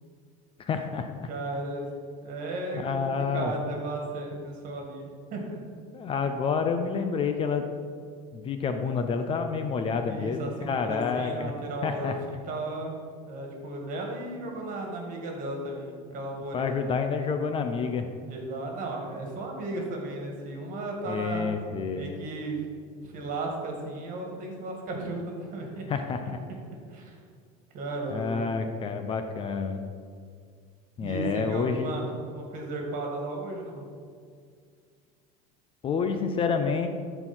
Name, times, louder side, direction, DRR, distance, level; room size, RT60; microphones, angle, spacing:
voice 1, 0.6-1.3 2.7-3.5 5.9-7.7 8.3-11.5 11.8-12.4 16.5-18.1 21.1-22.1 25.9-26.4 28.1-29.9 31.0-32.0 35.8-36.9, left 5 dB, 30° left, 7 dB, 0.6 m, -29 dB
voice 2, 1.3-1.9 2.2-5.6 10.1-12.9 13.3-16.9 18.3-21.5 21.9-22.6 23.0-26.1 26.9-27.1 27.7-28.6 31.0-33.8, right 2 dB, 45° right, 1 dB, 2.1 m, -35 dB
12.5 x 4.5 x 4.4 m, 2.1 s
supercardioid pair, 125°, 18 cm